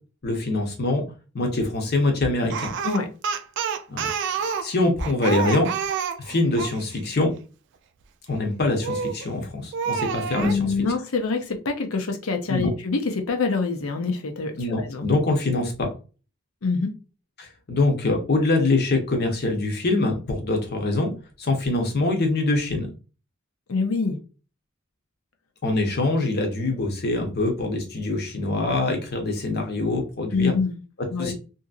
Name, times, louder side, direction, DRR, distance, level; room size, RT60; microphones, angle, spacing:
voice 1, 0.2-1.0 1.3-2.7 3.9-5.7 6.3-7.3 8.3-10.7 12.5-12.7 14.6-15.9 17.4-21.1 21.4-22.9 25.6-30.5 31.2-31.3, left 2 dB, 50° left, 3 dB, 0.8 m, -24 dB
Speech, 2.5-6.8 8.8-9.3 9.7-10.6, right 6 dB, 60° right, 0.3 m, -28 dB
voice 2, 10.3-15.1 16.6-16.9 23.7-24.2 30.3-30.8 31.1-31.3, left 4 dB, 85° left, 5 dB, 0.7 m, -25 dB
2.7 x 2.7 x 2.4 m, 0.34 s
head